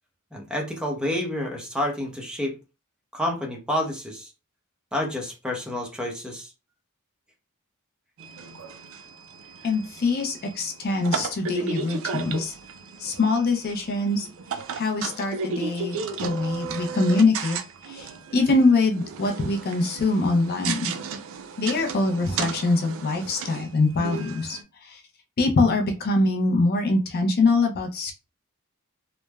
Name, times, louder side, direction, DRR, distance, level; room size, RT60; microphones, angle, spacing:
voice 1, 0.3-2.6 3.1-4.3 4.9-6.5, left 1 dB, 5° right, 0.6 m, -29 dB
sound 1, 8.2-24.6, right 5 dB, 70° right, 0.4 m, -34 dB
voice 2, 9.6-12.5 13.0-14.3 14.7-17.6 17.8-20.9 21.6-25.0 25.4-28.1, left 3 dB, 45° left, 0.4 m, -23 dB
3.1 x 2.0 x 2.2 m
head